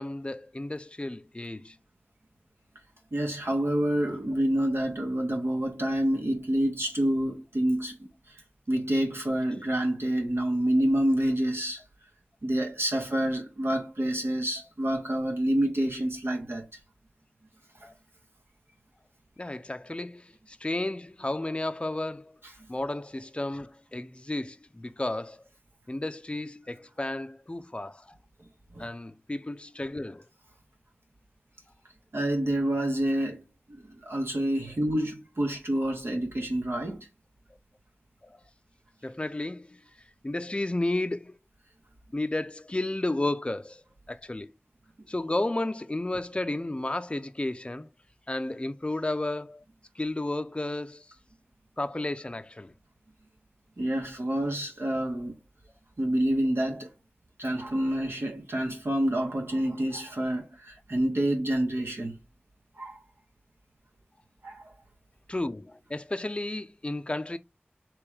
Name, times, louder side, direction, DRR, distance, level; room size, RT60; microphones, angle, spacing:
voice 1, 0.0-1.8 17.8-17.9 19.4-22.4 22.7-25.4 25.9-28.2 28.8-30.2 38.2-38.4 39.0-39.8 40.2-41.4 42.1-43.8 44.1-44.5 45.1-47.9 48.3-49.6 50.0-51.1 51.8-52.7 65.3-67.4, left 2 dB, 25° left, 0.4 m, -32 dB
voice 2, 3.1-8.1 8.7-11.8 12.4-16.7 28.7-28.9 32.1-33.4 33.7-37.1 53.8-55.3 56.0-56.9 57.4-62.2 62.8-62.9 64.4-64.7, right 1 dB, 75° right, 1.3 m, -28 dB
3.4 x 3.1 x 4.8 m
wide cardioid pair, 45°, 4 cm